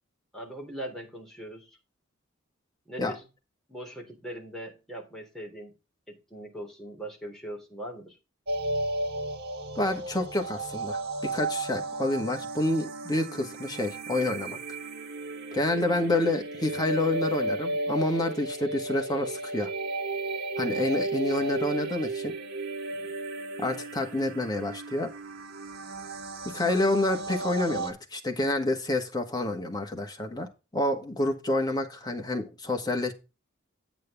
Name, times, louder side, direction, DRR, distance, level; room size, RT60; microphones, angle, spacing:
voice 1, 0.3-1.8 2.9-3.2 3.7-5.7 6.1-8.2 22.9-23.1, right 1 dB, ahead, 3.2 m, -41 dB
sound 1, 8.5-27.9, right 2 dB, 55° right, 1.5 m, -34 dB
voice 2, 9.8-11.0 11.3-14.6 15.5-19.7 20.6-22.3 23.6-25.1 26.5-30.5 30.7-33.1, left 1 dB, 20° left, 1.7 m, -28 dB
8.8 x 7.8 x 3.6 m
head